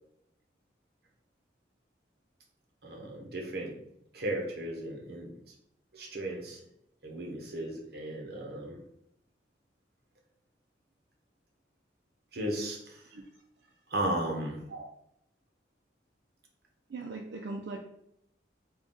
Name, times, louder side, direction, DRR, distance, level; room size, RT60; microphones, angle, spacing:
voice 1, 2.8-3.7 4.1-5.5 5.9-6.6 7.0-8.8 12.3-13.0 13.9-14.6, right 1 dB, 60° right, 0 dB, 0.8 m, -35 dB
voice 2, 16.9-17.8, right 3 dB, 80° right, 1 dB, 0.4 m, -39 dB
3.7 x 2.3 x 3.8 m, 0.76 s
head